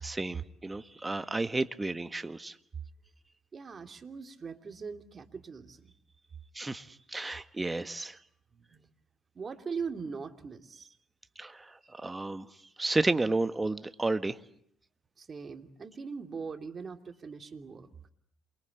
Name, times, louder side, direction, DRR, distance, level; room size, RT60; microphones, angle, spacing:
voice 1, 0.0-2.5 6.5-8.2 11.4-12.5 12.8-14.4, right 2 dB, 20° right, 1.6 m, -32 dB
voice 2, 3.5-5.9 8.5-8.9 9.3-10.9 15.2-17.9, right 5 dB, 40° right, 2.9 m, -41 dB
28.5 x 23.5 x 8.3 m
hypercardioid pair, 55°, 0 cm